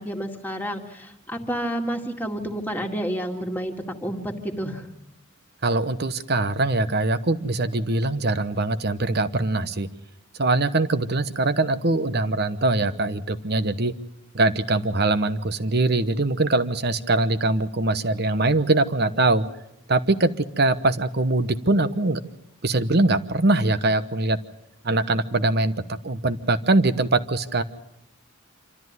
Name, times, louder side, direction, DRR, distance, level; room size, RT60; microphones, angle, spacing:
voice 1, 0.0-3.7 4.0-4.9, equal, 10° left, 2 dB, 2.2 m, -30 dB
voice 2, 5.6-9.9 10.4-13.9 14.3-19.5 19.9-22.2 22.6-24.4 24.8-25.7 26.0-27.6, right 2 dB, 50° right, 12 dB, 1.1 m, -22 dB
26.5 x 13.5 x 9.6 m, 0.83 s
head